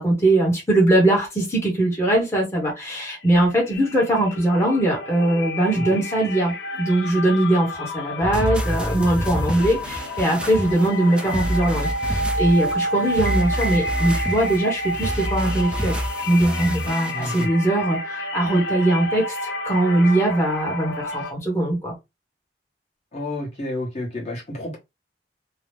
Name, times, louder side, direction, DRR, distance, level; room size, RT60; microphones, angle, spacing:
voice 1, 0.0-16.0 16.3-21.9, right 1 dB, 15° left, 1.0 m, -21 dB
sound 1, 2.7-2.9 3.2-21.3, equal, 80° left, 0.7 m, -30 dB
sound 2, 8.2-17.5, equal, 5° right, 0.3 m, -28 dB
voice 2, 17.1-17.5 23.1-24.8, left 1 dB, 35° left, 1.1 m, -30 dB
2.8 x 2.0 x 3.2 m
head